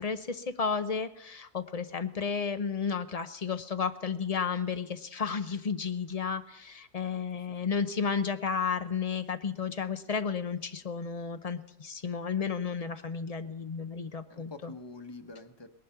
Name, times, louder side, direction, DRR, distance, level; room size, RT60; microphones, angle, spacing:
voice 1, 0.0-14.7, left 6 dB, 90° left, 9 dB, 0.3 m, -32 dB
voice 2, 14.3-15.7, left 3 dB, 20° left, 9 dB, 0.8 m, -46 dB
19.5 x 11.5 x 5.7 m, 0.84 s
omnidirectional pair, 1.7 m